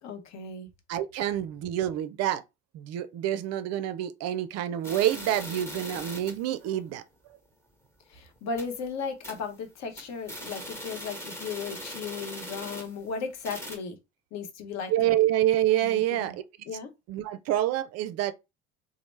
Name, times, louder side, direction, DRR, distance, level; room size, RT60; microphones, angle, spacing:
voice 1, 0.0-0.7 8.1-14.0 14.3-15.1 15.8-16.4 16.7-16.9, left 5 dB, 50° left, 0.8 m, -36 dB
voice 2, 0.9-2.4 2.7-7.0 14.9-16.3 17.1-18.3, right 12 dB, 50° right, 0.4 m, -27 dB
sound 1, 4.8-6.5 6.9-7.0 7.3-7.4 7.8-8.0 8.4-8.8 9.2-9.5 9.8-13.1 13.4-13.8, equal, 10° left, 1.1 m, -40 dB
3.0 x 2.0 x 3.2 m
hypercardioid pair, 65°, 34 cm